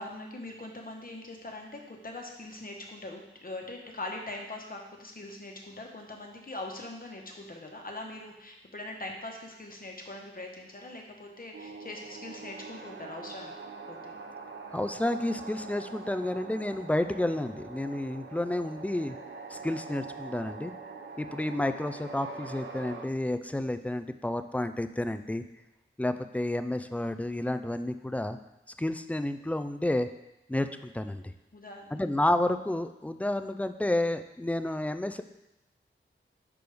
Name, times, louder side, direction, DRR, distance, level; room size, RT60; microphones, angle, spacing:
voice 1, 0.0-13.5 13.9-14.2 31.5-31.9, left 2 dB, 45° left, 1 dB, 1.1 m, -42 dB
sound 1, 11.5-23.1, right 4 dB, 65° right, 0.6 m, -44 dB
voice 2, 14.7-19.2 19.5-20.7 21.2-25.4 26.0-28.4 28.8-30.1 30.5-31.2 31.9-35.2, left 1 dB, 5° left, 10 dB, 0.3 m, -30 dB
6.0 x 5.1 x 3.4 m, 0.92 s
wide cardioid pair, 60°, 21 cm